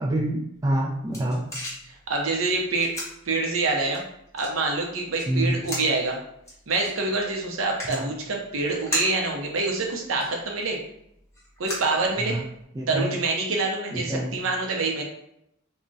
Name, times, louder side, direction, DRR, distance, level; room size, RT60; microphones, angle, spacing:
voice 1, 0.0-1.5 5.3-5.7 7.9-8.1 12.2-12.4 12.8-13.1 13.9-14.4, right 1 dB, 15° right, -2 dB, 0.3 m, -27 dB
sound 1, 0.6-12.6, equal, 15° left, 0.8 m, -39 dB
voice 2, 1.8-2.9 3.3-4.0 4.3-6.2 6.7-10.8 11.6-12.4 12.9-15.0, right 3 dB, 70° right, 1 dB, 0.6 m, -26 dB
2.3 x 2.1 x 3.8 m, 0.77 s
head